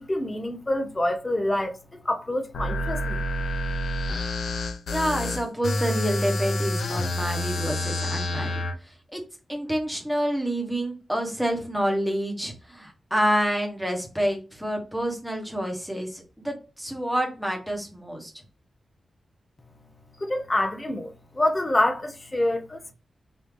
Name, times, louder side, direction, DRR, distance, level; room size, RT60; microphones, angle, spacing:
voice 1, 0.0-3.2 20.2-22.9, left 1 dB, 20° left, 0.5 m, -27 dB
sound 1, 2.5-8.7, left 1 dB, 65° left, 0.5 m, -28 dB
voice 2, 4.9-8.5 8.8-9.2 9.5-18.3, equal, ahead, 1.0 m, -28 dB
3.4 x 2.6 x 3.2 m
wide cardioid pair, 150°, 0 cm